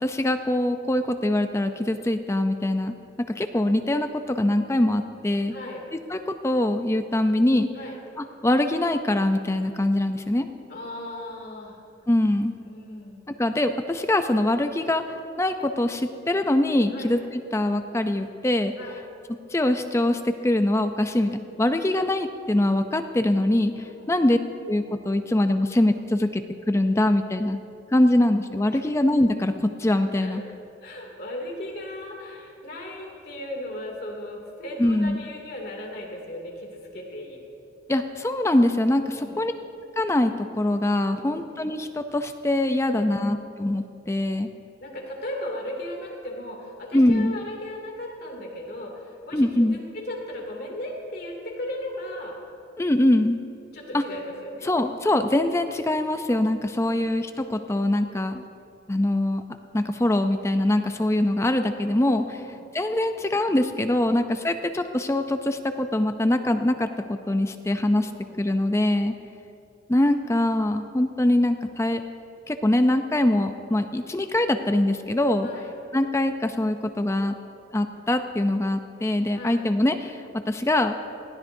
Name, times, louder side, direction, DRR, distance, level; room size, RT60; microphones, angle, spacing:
voice 1, 0.0-2.9 3.4-5.5 6.1-6.2 6.4-7.7 8.2-10.5 12.1-12.5 13.4-15.0 15.4-18.7 19.5-24.4 24.7-27.6 27.9-29.5 29.8-30.4 34.8-35.2 37.9-39.5 40.0-44.5 46.9-47.3 49.3-49.8 52.8-53.4 53.9-54.0 54.7-58.4 58.9-59.4 59.7-62.4 62.7-68.1 68.4-69.1 69.9-72.0 72.5-75.5 75.9-77.3 77.7-80.2 80.5-81.0, left 1 dB, 15° left, 8 dB, 0.4 m, -23 dB
voice 2, 5.5-5.9 7.7-8.0 10.7-11.8 12.6-13.3 16.9-17.1 18.8-19.0 23.8-24.1 28.7-28.9 30.2-30.4 30.8-37.5 39.0-39.5 41.1-41.5 42.9-43.4 44.8-52.4 53.7-54.8 56.8-57.1 62.3-62.6 68.1-68.4 75.4-75.8 79.4-79.6, left 1 dB, 55° left, -1 dB, 2.5 m, -37 dB
20.0 x 15.5 x 2.7 m, 2.7 s
head